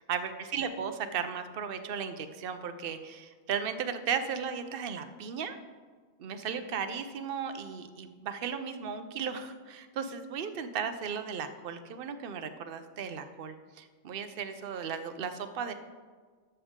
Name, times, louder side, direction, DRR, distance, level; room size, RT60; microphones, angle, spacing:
voice 1, 0.1-5.6 6.2-15.7, right 7 dB, 55° right, 9 dB, 0.8 m, -36 dB
12.5 x 7.0 x 3.7 m, 1.5 s
omnidirectional pair, 1.2 m